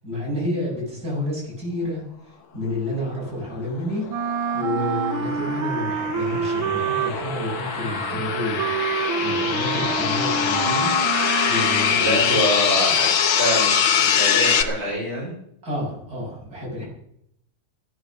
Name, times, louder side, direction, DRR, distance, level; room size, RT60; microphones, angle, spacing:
voice 1, 0.0-4.1 4.5-8.6 8.9-11.0 11.4-12.3 15.6-16.9, left 1 dB, 45° right, -3 dB, 8.3 m, -30 dB
sound 1, 3.8-14.6, left 8 dB, 75° left, 2.0 m, -23 dB
Wind instrument woodwind instrument, 4.1-12.2, right 6 dB, 75° right, 1.9 m, -27 dB
voice 2, 12.0-15.3, equal, 30° right, -4 dB, 5.7 m, -25 dB
15.5 x 14.5 x 6.4 m, 0.73 s
omnidirectional pair, 2.2 m